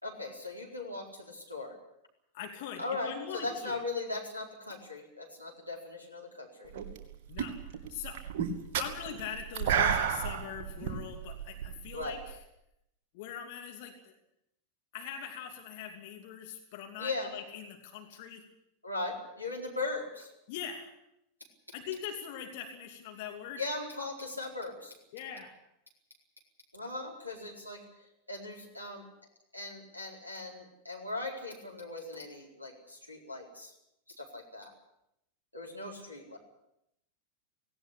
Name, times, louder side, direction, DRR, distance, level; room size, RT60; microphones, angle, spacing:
voice 1, 0.0-1.8 2.8-6.7 11.9-12.2 17.0-17.3 18.8-20.3 23.6-24.9 26.7-27.8 28.3-29.0 29.5-33.7 34.2-34.7 35.5-36.4, left 3 dB, 90° left, -1 dB, 4.3 m, -38 dB
voice 2, 2.3-3.8 7.3-7.6 7.9-8.2 8.8-12.4 13.1-14.1 14.9-18.4 20.5-20.9 21.7-23.6 25.1-25.6, left 8 dB, 50° left, 3 dB, 2.8 m, -42 dB
sound 1, 6.7-7.1 7.4-12.3, right 7 dB, 50° right, 2.6 m, -31 dB
18.0 x 17.5 x 10.0 m, 0.83 s
figure-of-eight pair, 90°, 0 cm